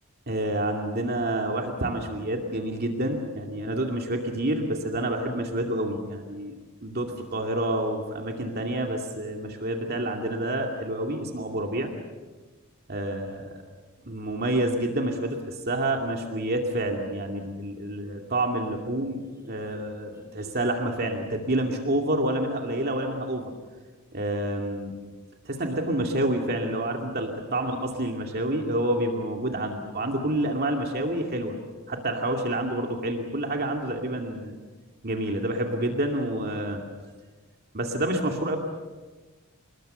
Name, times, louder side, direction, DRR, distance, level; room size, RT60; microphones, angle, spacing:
voice 1, 0.3-6.5 6.8-11.9 12.9-13.6 14.0-23.5 24.1-24.9 25.5-31.6 31.9-34.5 35.0-36.8 37.7-38.6, right 1 dB, 45° right, 2 dB, 2.5 m, -28 dB
27.5 x 21.0 x 7.0 m, 1.3 s
head